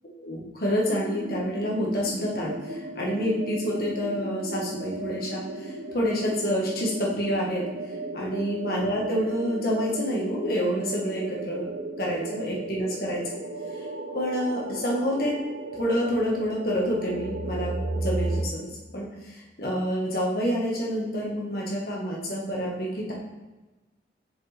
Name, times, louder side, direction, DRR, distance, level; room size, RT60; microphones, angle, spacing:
voice 1, 0.2-7.6 8.1-11.7 12.0-13.2 14.1-15.4 15.7-18.7 18.9-23.1, equal, 55° left, -4 dB, 1.8 m, -28 dB
sound 1, 0.9-18.4, right 2 dB, 85° right, 0.9 m, -35 dB
6.5 x 5.4 x 3.6 m, 1.1 s
head